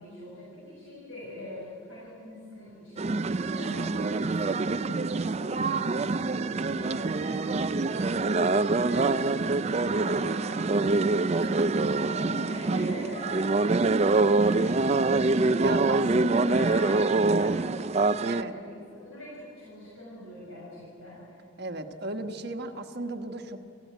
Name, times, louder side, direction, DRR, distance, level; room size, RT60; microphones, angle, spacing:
voice 1, 0.0-11.6 12.0-15.6 16.2-21.2 22.1-22.3, left 1 dB, 80° left, -6 dB, 6.4 m, -43 dB
sound 1, 3.0-18.4, right 3 dB, 35° right, 0.4 m, -25 dB
voice 2, 11.4-12.3 14.6-14.8 15.5-16.6 18.2-18.5 21.6-23.6, right 2 dB, 55° right, 5 dB, 1.3 m, -36 dB
27.0 x 15.0 x 9.3 m, 2.6 s
head